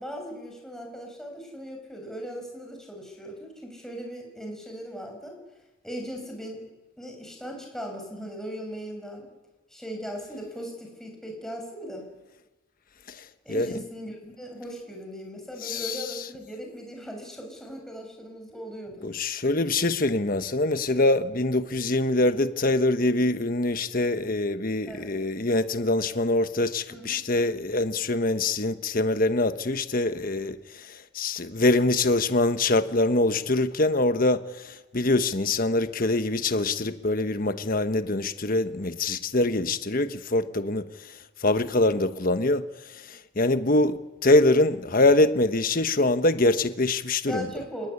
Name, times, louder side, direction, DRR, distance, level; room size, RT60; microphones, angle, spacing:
voice 1, 0.0-5.4 5.8-6.7 7.0-9.3 9.7-12.1 13.4-19.1 24.9-25.2 26.9-27.3 41.6-42.0 47.3-47.9, equal, ahead, 6.7 m, -38 dB
voice 2, 15.6-16.0 19.0-30.6 30.9-40.9 41.4-42.6 43.1-43.9 44.2-47.5, left 2 dB, 45° left, 1.3 m, -24 dB
30.0 x 18.5 x 9.9 m
head